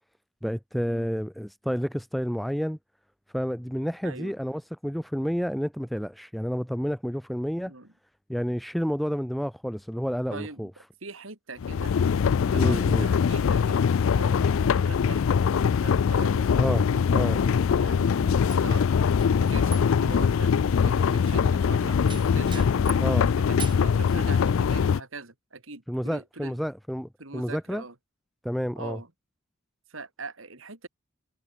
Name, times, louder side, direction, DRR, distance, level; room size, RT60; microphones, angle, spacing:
voice 1, 0.4-2.8 3.3-7.7 8.3-10.7 12.5-13.1 16.6-16.8 17.1-17.4 23.0-23.3 25.9-27.8 28.4-29.0, equal, ahead, 0.4 m, -30 dB
voice 2, 4.0-4.3 7.6-7.9 10.3-10.7 11.0-11.9 12.4-13.8 14.1-16.7 17.8-18.9 19.4-20.5 20.8-22.0 22.3-26.6 27.2-28.0 28.8-29.1 29.9-30.9, right 3 dB, 75° right, 3.6 m, -42 dB
sound 1, 11.6-25.0, left 6 dB, 75° left, 0.4 m, -22 dB
sound 2, 18.5-23.1 23.6-24.2, right 8 dB, 25° right, 3.4 m, -43 dB
head